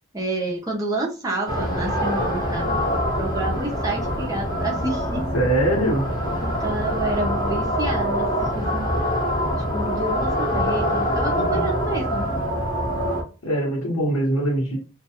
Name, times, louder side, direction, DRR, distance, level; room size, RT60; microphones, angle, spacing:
voice 1, 0.1-5.3 6.4-9.0 9.4-12.3, right 2 dB, 15° right, 0.5 m, -29 dB
sound 1, 1.5-13.2, equal, 20° left, 0.7 m, -24 dB
voice 2, 5.3-6.1 11.3-11.7 13.4-14.8, right 1 dB, 85° left, 1.0 m, -23 dB
2.2 x 2.2 x 2.8 m
head